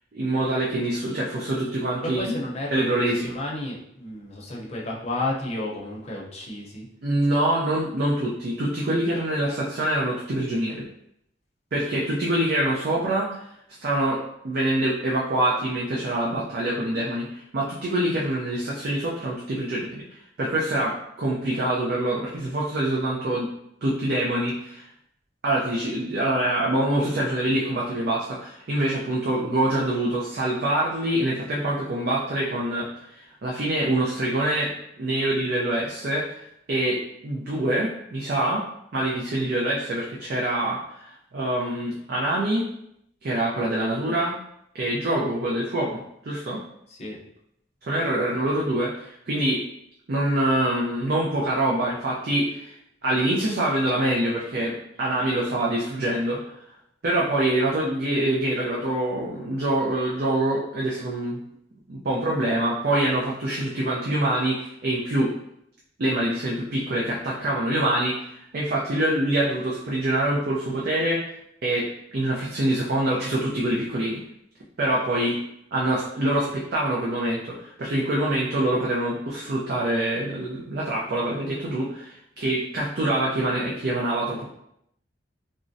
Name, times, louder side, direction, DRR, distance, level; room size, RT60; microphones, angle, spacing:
voice 1, 0.1-2.3 2.7-3.3 7.0-10.9 11.7-13.5 13.8-14.2 14.4-23.5 23.8-24.9 25.4-36.4 36.7-38.6 38.9-42.6 43.2-44.4 44.7-46.6 47.9-49.6 50.1-52.7 53.0-56.5 57.0-61.4 61.9-65.3 66.0-71.2 71.6-74.2 74.8-75.4 75.7-84.5, right 1 dB, 55° right, -4 dB, 0.5 m, -25 dB
voice 2, 2.0-6.9 46.9-47.2, left 2 dB, 35° left, -3 dB, 0.6 m, -32 dB
3.6 x 2.0 x 2.5 m, 0.76 s
head